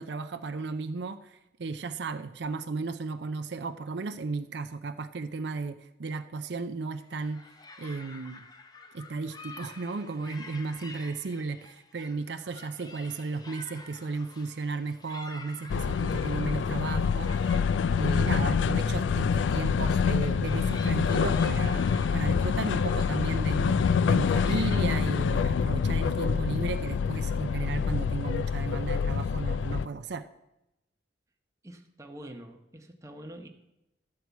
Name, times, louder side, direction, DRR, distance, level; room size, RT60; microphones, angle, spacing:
voice 1, 0.0-7.4 7.8-8.5 8.9-17.6 18.0-23.8 24.1-30.3, right 4 dB, 70° right, 9 dB, 0.5 m, -34 dB
sound 1, 7.0-25.0, left 3 dB, 20° left, 0.7 m, -49 dB
sound 2, 15.7-29.9, left 6 dB, 80° left, 0.3 m, -26 dB
voice 2, 31.6-33.5, right 1 dB, 15° right, 3 dB, 1.0 m, -45 dB
12.5 x 4.7 x 8.2 m, 0.89 s
head